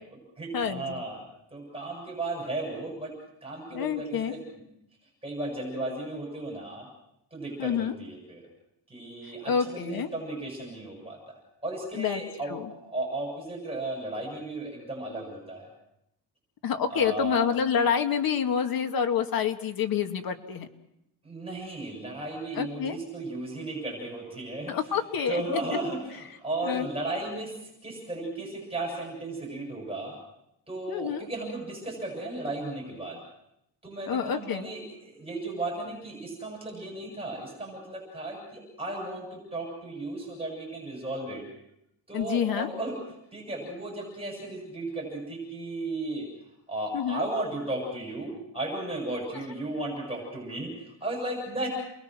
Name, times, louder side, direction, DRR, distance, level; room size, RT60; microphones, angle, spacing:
voice 1, 0.4-1.2 1.5-3.2 3.4-4.6 5.2-6.9 7.3-8.4 8.9-15.7 16.9-17.5 21.2-25.0 25.3-30.2 30.7-33.2 33.8-41.5 42.1-43.0 43.3-46.3 46.7-51.7, right 2 dB, 15° right, -1 dB, 7.3 m, -35 dB
voice 2, 3.7-4.4 7.6-7.9 9.5-10.1 12.0-12.2 12.5-12.6 16.6-20.7 22.6-23.0 24.7-25.4 26.6-26.9 30.9-31.3 34.1-34.7 42.1-42.7 46.9-47.2, left 7 dB, 55° left, 6 dB, 2.1 m, -27 dB
29.0 x 21.5 x 6.2 m, 0.81 s
cardioid pair, 160°, 42 cm